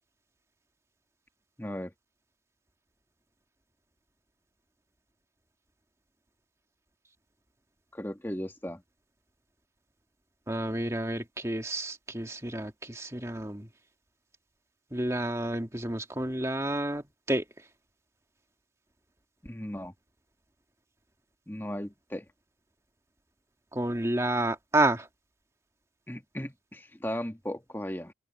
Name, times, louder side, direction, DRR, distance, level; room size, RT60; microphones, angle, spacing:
voice 1, 1.6-1.9 7.9-8.8 19.4-19.9 21.5-22.2 26.1-28.1, equal, 10° left, 1.5 m, -36 dB
voice 2, 10.5-13.7 14.9-17.4 23.7-25.1, right 1 dB, 15° right, 2.0 m, -30 dB
open air
head